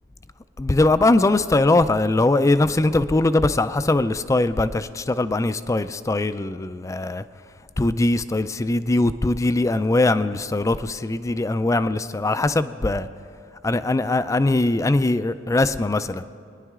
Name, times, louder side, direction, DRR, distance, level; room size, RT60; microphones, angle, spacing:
voice 1, 0.6-7.2 7.8-13.1 13.6-16.3, left 2 dB, 15° left, 13 dB, 0.3 m, -21 dB
22.0 x 10.5 x 3.7 m, 2.5 s
head